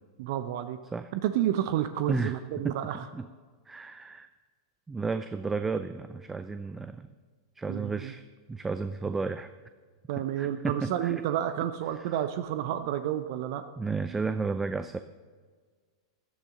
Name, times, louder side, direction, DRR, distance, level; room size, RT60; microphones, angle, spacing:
voice 1, 0.2-0.8 1.1-3.0 7.7-8.1 10.1-13.6, right 11 dB, 55° right, 10 dB, 0.7 m, -30 dB
voice 2, 2.6-3.3 3.7-4.3 4.9-7.1 7.6-9.5 10.2-11.2 13.8-15.0, right 4 dB, 15° right, 10 dB, 0.5 m, -33 dB
16.0 x 11.5 x 3.8 m, 1.5 s
figure-of-eight pair, 95°, 2 cm